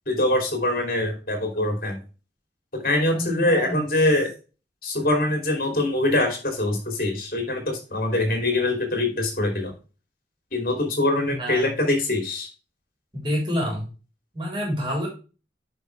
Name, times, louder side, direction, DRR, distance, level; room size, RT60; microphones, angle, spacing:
voice 1, 0.1-2.0 2.7-4.3 4.8-9.7 10.5-12.5, left 1 dB, 50° left, 3 dB, 2.8 m, -23 dB
voice 2, 3.1-3.8 11.3-11.7 13.1-13.9 14.3-15.1, equal, 25° right, -3 dB, 3.9 m, -27 dB
9.8 x 5.3 x 3.3 m, 0.33 s
head